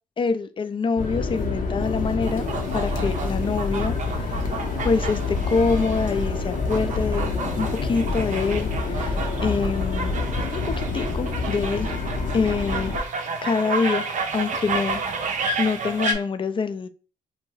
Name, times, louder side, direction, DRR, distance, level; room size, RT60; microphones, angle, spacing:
voice 1, 0.2-2.4 2.7-4.4 4.8-10.2 10.5-11.9 12.3-12.9 13.4-15.0 15.6-16.9, left 4 dB, 30° left, 0.4 m, -26 dB
sound 1, 1.0-13.0, left 3 dB, 60° left, 0.7 m, -27 dB
sound 2, 2.2-16.1, right 3 dB, 50° right, 0.5 m, -31 dB
2.7 x 2.2 x 3.0 m
supercardioid pair, 55°, 16 cm